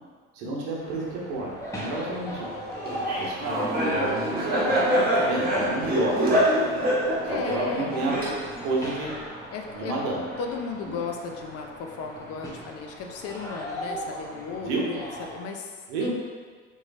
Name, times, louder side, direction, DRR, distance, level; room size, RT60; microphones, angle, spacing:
voice 1, 0.3-2.4 3.2-4.8 5.2-6.7 7.3-8.1 8.6-9.1 9.7-10.2 10.9-11.0 14.7-14.8 15.9-16.1, right 2 dB, 70° right, -3 dB, 1.0 m, -30 dB
sound 1, 0.8-15.4, equal, 10° left, 0.9 m, -39 dB
Laughter, 2.9-8.7, equal, 25° right, 1.0 m, -25 dB
voice 2, 4.9-5.4 7.3-7.9 9.5-10.0 10.4-15.7 16.0-16.1, left 5 dB, 45° left, 3 dB, 0.5 m, -35 dB
3.7 x 3.0 x 2.6 m, 1.5 s
hypercardioid pair, 75°, 35 cm